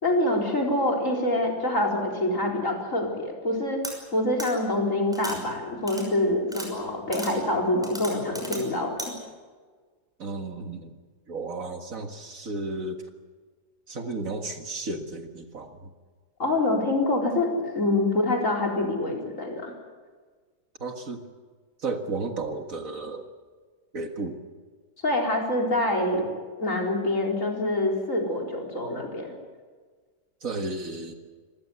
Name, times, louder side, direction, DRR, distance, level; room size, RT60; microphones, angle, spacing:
voice 1, 0.0-9.1 16.4-17.5 17.7-19.7 25.0-26.3 26.6-29.3, left 1 dB, 50° left, 0 dB, 4.6 m, -26 dB
sound 1, 3.8-3.9 4.4-4.5 5.1-5.4 5.9-6.0 6.5-6.7 7.1-7.3 7.8-8.6 9.0-9.1, equal, ahead, 5.9 m, -35 dB
voice 2, 10.2-11.0 11.3-13.0 13.9-15.9 20.8-21.2 21.8-23.3 23.9-24.4 26.2-26.3 30.4-31.1, right 3 dB, 55° right, 6 dB, 2.0 m, -33 dB
26.5 x 15.5 x 9.7 m, 1.5 s
omnidirectional pair, 1.8 m